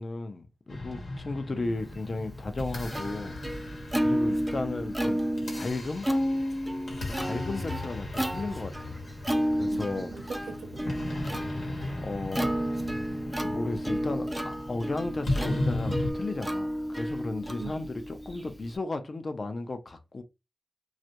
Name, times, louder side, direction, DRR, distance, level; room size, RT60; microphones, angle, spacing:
voice 1, 0.0-3.4 4.0-5.3 5.5-6.1 7.1-9.0 9.6-10.1 12.0-12.5 13.4-20.2, left 2 dB, 50° left, 0.5 m, -34 dB
sound 1, 0.7-16.1, left 2 dB, 80° left, 1.0 m, -37 dB
Plucked string instrument, 2.0-18.8, equal, 10° right, 0.4 m, -32 dB
voice 2, 9.7-11.5 17.6-17.9, right 6 dB, 90° right, 0.4 m, -43 dB
2.4 x 2.1 x 2.8 m
cardioid pair, 60°, 0 cm